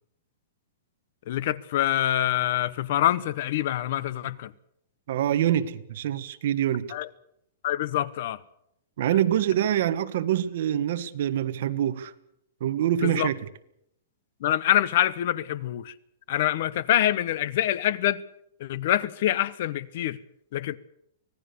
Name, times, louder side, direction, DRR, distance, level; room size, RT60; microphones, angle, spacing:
voice 1, 1.3-4.5 6.9-7.1 7.6-8.4 13.0-13.3 14.4-15.9 16.3-18.2 18.6-20.2 20.5-20.8, left 12 dB, 45° left, 1.0 m, -25 dB
voice 2, 5.1-6.9 9.0-12.1 12.6-13.4, right 11 dB, 50° right, 1.6 m, -25 dB
25.5 x 17.5 x 6.9 m
hypercardioid pair, 170°, 0 cm